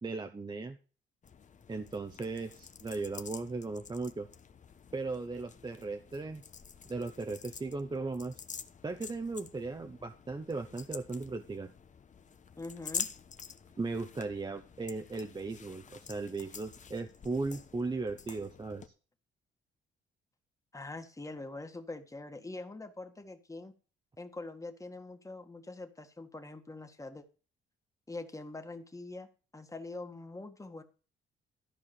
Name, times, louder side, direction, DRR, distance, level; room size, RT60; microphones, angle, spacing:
voice 1, 0.0-0.8 1.7-4.3 4.9-6.4 6.9-8.4 8.8-11.7 13.8-18.8, right 3 dB, 20° right, 6 dB, 1.0 m, -37 dB
sound 1, 1.2-18.9, left 6 dB, 40° left, 1.0 m, -47 dB
voice 2, 12.6-13.1 20.7-23.7 24.2-27.3 28.1-30.8, left 2 dB, 15° left, 7 dB, 1.8 m, -44 dB
13.5 x 4.7 x 7.2 m, 0.36 s
cardioid pair, 90°, 20 cm